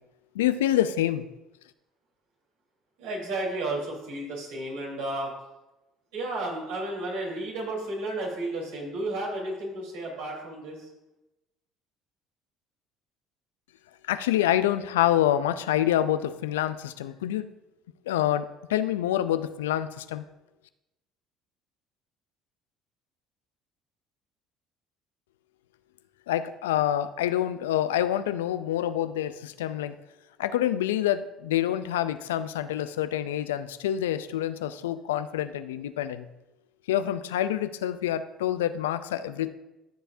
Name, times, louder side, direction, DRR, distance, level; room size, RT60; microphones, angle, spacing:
voice 1, 0.3-1.3 14.1-17.5 18.1-20.2 26.3-29.9 30.4-36.3 36.9-39.5, left 12 dB, 90° left, 12 dB, 0.4 m, -27 dB
voice 2, 3.0-5.3 6.1-10.9, right 2 dB, 80° right, -3 dB, 3.6 m, -32 dB
14.5 x 6.9 x 2.7 m, 0.98 s
hypercardioid pair, 70°, 0 cm